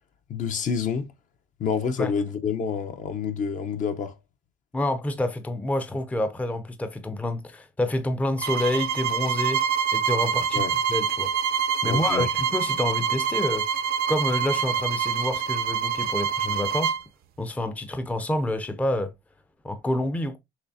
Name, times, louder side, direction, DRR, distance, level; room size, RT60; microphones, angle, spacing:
voice 1, 0.3-1.1 1.6-4.1 10.5-10.7 11.8-12.3, left 6 dB, 50° left, 0.7 m, -28 dB
voice 2, 4.7-9.6 9.9-10.6 10.9-11.3 11.8-13.7 14.1-16.9 17.4-19.1 19.6-20.4, left 1 dB, 10° left, 0.5 m, -28 dB
sound 1, 8.4-17.0, right 7 dB, 65° right, 0.6 m, -26 dB
6.0 x 3.2 x 2.6 m
cardioid pair, 110°, 17 cm